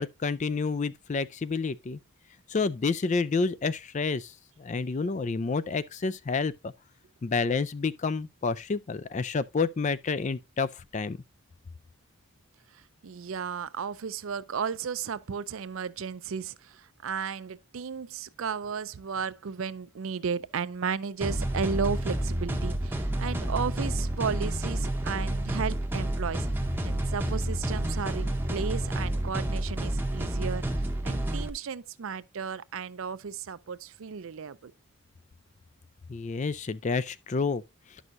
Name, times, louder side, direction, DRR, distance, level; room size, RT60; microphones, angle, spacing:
voice 1, 0.0-2.0 2.5-4.3 4.6-6.7 7.2-11.2 36.1-37.6, left 4 dB, 35° left, 0.3 m, -29 dB
voice 2, 12.7-26.5 26.8-30.6 31.0-34.7, right 6 dB, 65° right, 0.5 m, -34 dB
sound 1, 21.2-31.5, right 1 dB, 10° right, 0.7 m, -29 dB
11.0 x 6.2 x 2.5 m
head